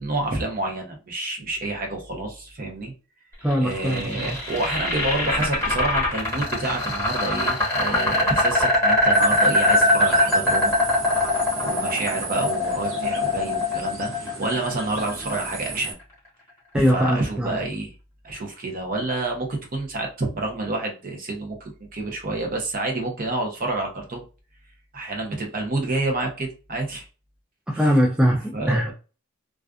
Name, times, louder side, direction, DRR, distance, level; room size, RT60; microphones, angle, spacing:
voice 1, 0.0-2.9 3.6-10.7 11.6-16.0 16.7-17.9 18.2-24.2 24.9-27.0 27.7-27.9 28.5-28.8, right 2 dB, 45° right, 2 dB, 0.7 m, -28 dB
voice 2, 3.4-4.4 16.7-17.6 27.7-28.9, equal, 5° right, -2 dB, 0.3 m, -21 dB
sound 1, 3.5-15.6, left 1 dB, 15° left, 1.1 m, -22 dB
sound 2, 9.1-15.9, right 4 dB, 75° right, 0.7 m, -35 dB
2.4 x 2.3 x 2.3 m, 0.35 s
head